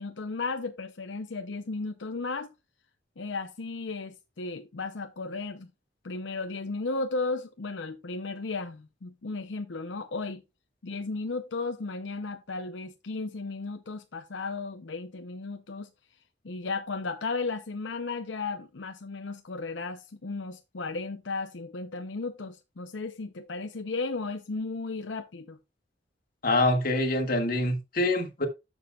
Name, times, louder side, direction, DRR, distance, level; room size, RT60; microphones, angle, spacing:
voice 1, 0.0-2.5 3.2-5.7 6.0-10.4 10.8-15.9 16.4-25.6, left 3 dB, 85° left, 0.7 m, -35 dB
voice 2, 26.4-28.5, left 2 dB, 55° left, 1.9 m, -25 dB
11.0 x 7.1 x 2.4 m
head